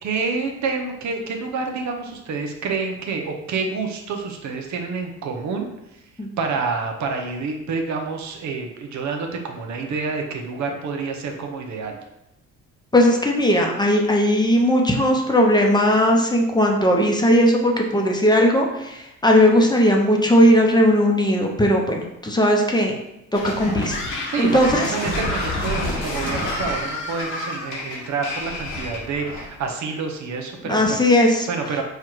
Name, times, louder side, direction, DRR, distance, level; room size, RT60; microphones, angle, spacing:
voice 1, 0.0-6.0 6.4-12.0 24.3-31.0 31.5-31.8, right 4 dB, 70° right, 3 dB, 0.8 m, -28 dB
voice 2, 12.9-23.0 23.3-24.0 24.4-24.9 30.6-31.5, equal, 15° left, 1 dB, 0.7 m, -18 dB
sound 1, 23.3-29.6, left 2 dB, 90° left, 1.4 m, -29 dB
Screaming, 23.9-27.8, left 1 dB, 40° left, 1.1 m, -31 dB
4.5 x 2.4 x 4.5 m, 0.88 s
cardioid pair, 90°, 30 cm